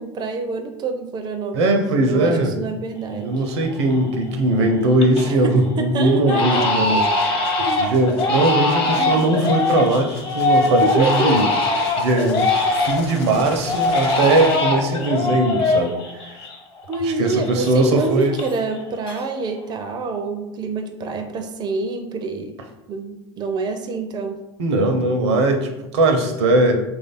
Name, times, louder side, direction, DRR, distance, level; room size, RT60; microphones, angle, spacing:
voice 1, 0.0-3.4 5.3-6.9 7.6-7.9 8.9-9.5 10.8-11.4 16.9-22.6 22.9-24.4, right 3 dB, 30° right, 6 dB, 0.4 m, -26 dB
voice 2, 1.5-2.5 3.2-7.4 7.8-11.4 12.0-12.5 12.8-16.2 17.0-18.3 24.6-26.8, right 2 dB, 70° right, 5 dB, 0.6 m, -19 dB
Crying sobbing, 3.1-3.2 3.7-4.1 4.5-5.4 5.7-5.8 6.3-13.2 13.7-17.0 17.3-18.8 19.0-19.6, left 2 dB, 35° left, 0.9 m, -22 dB
sound 1, 6.4-15.2, left 3 dB, 70° left, 0.8 m, -40 dB
3.1 x 2.5 x 4.0 m, 0.99 s
hypercardioid pair, 80°, 14 cm